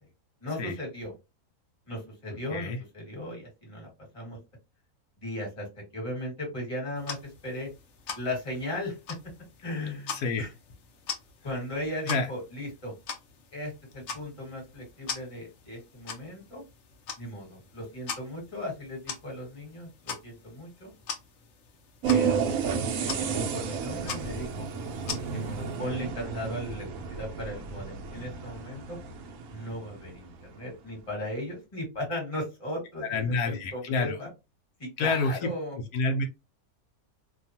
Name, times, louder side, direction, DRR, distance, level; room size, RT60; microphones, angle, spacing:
voice 1, 0.4-1.1 1.9-4.4 5.2-5.7 5.9-7.7 8.1-9.0 9.6-10.5 11.4-12.9 13.5-16.6 17.2-20.9 22.0-24.7 25.3-29.0 29.5-34.3 34.8-35.8, left 1 dB, 20° left, -1 dB, 1.4 m, -37 dB
sound 1, 7.0-25.8, left 6 dB, 60° left, 0.9 m, -42 dB
voice 2, 10.1-10.4 12.1-12.3 33.0-34.2 35.0-35.5 35.9-36.2, left 3 dB, 80° left, 3 dB, 1.1 m, -28 dB
sound 2, 22.0-30.4, right 6 dB, 75° right, 1.0 m, -32 dB
2.8 x 2.3 x 2.7 m, 0.26 s
omnidirectional pair, 1.5 m